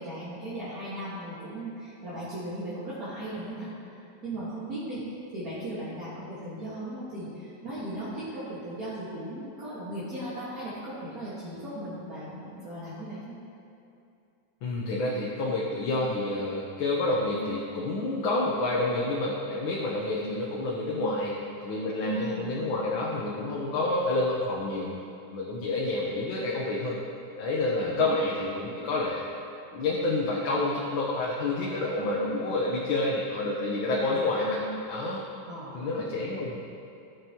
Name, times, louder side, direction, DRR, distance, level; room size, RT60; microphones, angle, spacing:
voice 1, 0.0-13.4 22.1-22.9 27.8-28.2 35.5-36.1, right 1 dB, 50° right, -11 dB, 2.2 m, -37 dB
voice 2, 14.6-24.9 25.3-27.0 27.4-29.2 29.7-35.2 35.7-36.6, left 2 dB, 90° left, -4 dB, 1.8 m, -28 dB
14.5 x 7.3 x 3.0 m, 2.6 s
omnidirectional pair, 2.1 m